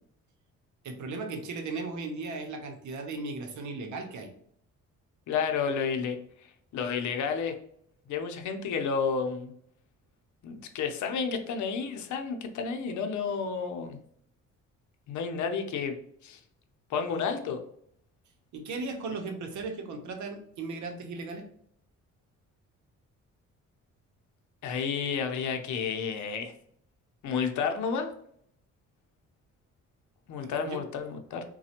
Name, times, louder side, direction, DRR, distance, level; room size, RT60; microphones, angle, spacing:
voice 1, 0.8-4.3 18.5-21.4 30.4-30.8, right 3 dB, 75° right, 5 dB, 0.8 m, -36 dB
voice 2, 5.3-6.2 6.7-7.6 8.1-9.5 10.4-14.0 15.1-16.0 16.2-16.4 16.9-17.6 24.6-26.5 27.2-28.1 30.3-31.4, left 6 dB, 75° left, 6 dB, 0.6 m, -31 dB
4.1 x 2.2 x 2.8 m, 0.65 s
cardioid pair, 90°, 30 cm